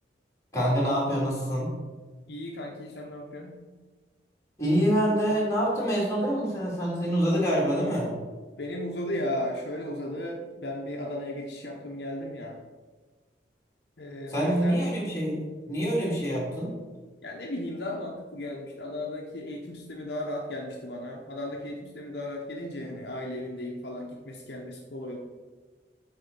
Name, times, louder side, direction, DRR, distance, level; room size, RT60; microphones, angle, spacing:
voice 1, 0.5-1.7 4.6-8.1 14.3-16.7, equal, 15° left, -5 dB, 2.8 m, -26 dB
voice 2, 2.3-3.6 8.6-12.6 14.0-14.8 17.2-25.2, left 1 dB, 60° left, 0 dB, 0.9 m, -35 dB
8.2 x 3.9 x 6.8 m, 1.3 s
head